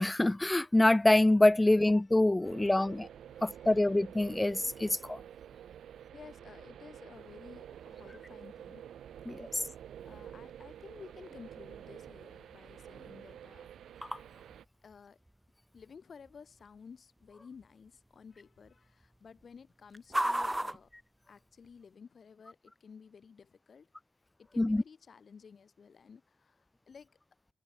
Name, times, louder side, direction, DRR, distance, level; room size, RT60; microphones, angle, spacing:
voice 1, 0.0-3.1 3.4-5.2 9.3-9.6 14.0-14.2 24.6-24.8, left 1 dB, 15° left, 0.4 m, -26 dB
voice 2, 2.4-3.0 3.3-3.9 6.1-8.8 9.5-9.7 10.1-13.7 14.8-15.2 15.7-20.9 21.3-23.9 24.4-27.2, left 6 dB, 55° left, 3.8 m, -54 dB
sound 1, 2.4-14.6, right 10 dB, 90° right, 0.8 m, -49 dB
sound 2, 7.1-22.0, right 1 dB, 10° right, 0.9 m, -43 dB
cardioid pair, 90°, 0 cm